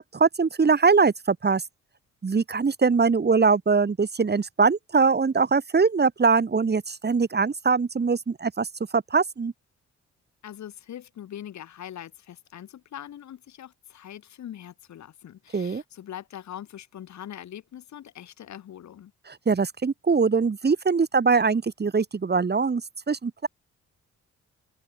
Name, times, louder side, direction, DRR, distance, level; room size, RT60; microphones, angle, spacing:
voice 1, 0.0-1.6 2.2-8.7 8.9-9.5 15.5-15.8 19.3-22.8 23.1-23.5, right 5 dB, 35° right, 2.7 m, -22 dB
voice 2, 10.4-19.1, left 10 dB, 70° left, 6.3 m, -42 dB
open air
supercardioid pair, 65°, 29 cm